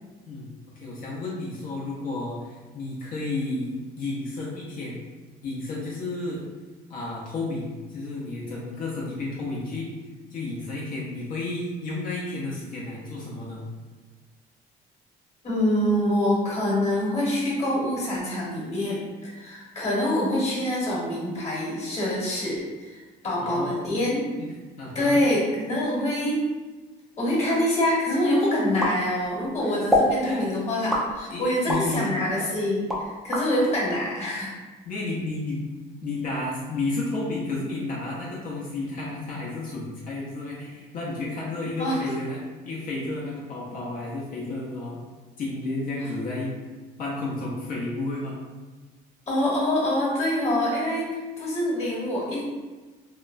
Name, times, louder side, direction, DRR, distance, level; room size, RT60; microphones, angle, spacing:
voice 1, 0.3-5.0 5.4-6.4 6.9-9.9 10.3-13.6 23.4-24.0 24.4-24.5 24.8-25.2 30.2-30.5 31.3-32.0 34.8-35.6 36.0-45.0 45.4-46.6 47.0-48.4, left 2 dB, 55° left, -5 dB, 0.6 m, -32 dB
voice 2, 15.4-23.0 23.2-24.3 24.9-26.4 27.2-32.8 33.2-34.5 41.8-42.0 49.3-52.4, left 1 dB, 40° left, -5 dB, 1.1 m, -25 dB
sound 1, 28.8-29.5 29.9-30.2 30.9-31.9 32.4-33.5, left 1 dB, ahead, 0.4 m, -24 dB
2.9 x 2.1 x 2.5 m, 1.3 s
cardioid pair, 110°, 17 cm